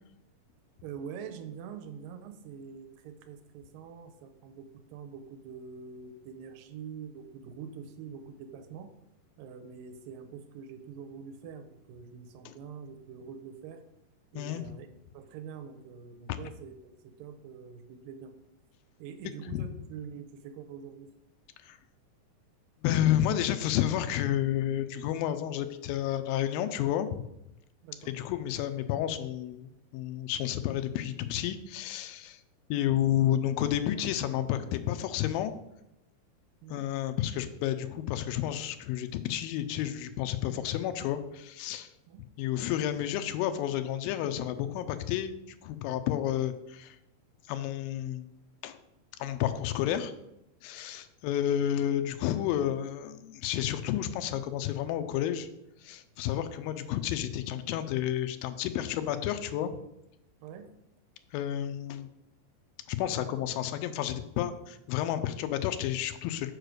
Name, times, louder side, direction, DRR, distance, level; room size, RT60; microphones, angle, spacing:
voice 1, 0.8-8.9 9.4-13.8 14.3-14.9 15.1-18.3 19.0-21.1 27.8-28.1 36.6-36.9 42.1-42.2 60.4-60.8, right 7 dB, 85° right, 7 dB, 2.4 m, -45 dB
voice 2, 14.4-14.7 19.5-19.6 21.6-21.8 22.8-27.2 28.0-32.4 32.7-35.5 36.7-41.9 42.4-45.3 45.6-47.0 47.5-48.3 48.6-48.8 49.2-50.1 50.6-55.5 55.8-59.7 61.3-62.1 62.9-66.5, left 11 dB, 90° left, 9 dB, 2.3 m, -31 dB
6.4 x 4.8 x 6.5 m, 0.85 s
omnidirectional pair, 4.0 m